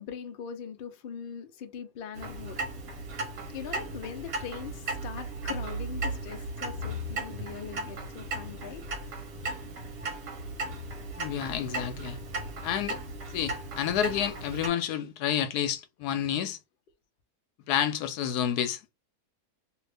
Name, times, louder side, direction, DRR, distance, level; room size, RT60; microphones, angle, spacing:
voice 1, 0.0-2.7 3.5-8.8 16.1-16.3, left 7 dB, 65° left, 0.5 m, -41 dB
Clock, 2.1-14.7, right 2 dB, 65° right, 1.3 m, -36 dB
voice 2, 11.2-12.2 12.6-13.0 13.3-16.6 17.7-18.8, left 10 dB, 85° left, 1.1 m, -29 dB
2.7 x 2.5 x 3.3 m
omnidirectional pair, 1.7 m